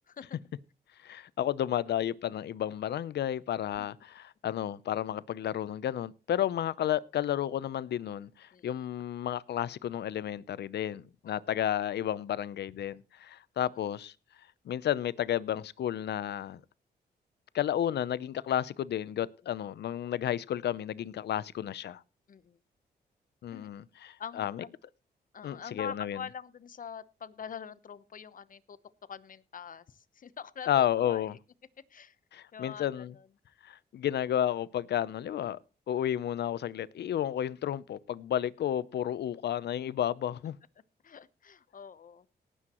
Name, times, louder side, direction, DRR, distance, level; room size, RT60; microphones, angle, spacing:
voice 1, 1.0-14.1 14.7-16.6 17.5-22.0 23.4-24.6 25.4-26.2 30.7-31.3 32.3-33.1 33.6-35.6 35.9-40.6, left 11 dB, 80° left, 0.7 m, -32 dB
voice 2, 24.2-24.7 25.3-28.8 29.1-31.3 31.9-32.2 32.5-33.3 41.0-42.3, left 7 dB, 50° left, 0.9 m, -44 dB
18.5 x 10.0 x 3.0 m
cardioid pair, 85°, 17 cm